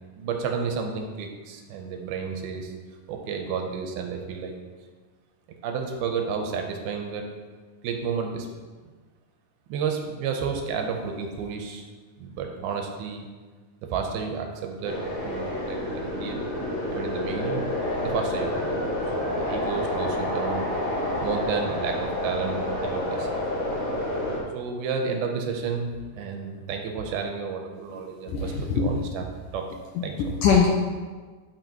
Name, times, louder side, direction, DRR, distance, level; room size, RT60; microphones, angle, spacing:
voice 1, 0.2-2.7 3.1-4.6 5.6-7.2 7.8-8.5 9.7-11.9 12.2-13.3 13.9-15.0 15.2-16.4 16.9-17.6 18.0-18.7 19.1-20.7 21.2-23.6 24.5-29.3 29.5-29.7 30.0-30.2, right 5 dB, 85° right, 3 dB, 2.6 m, -31 dB
sound 1, 14.8-24.4, left 1 dB, 50° left, 2.6 m, -29 dB
voice 2, 28.3-28.9 30.0-30.7, left 6 dB, 80° left, -1 dB, 1.9 m, -22 dB
11.5 x 5.7 x 3.0 m, 1.4 s
omnidirectional pair, 4.4 m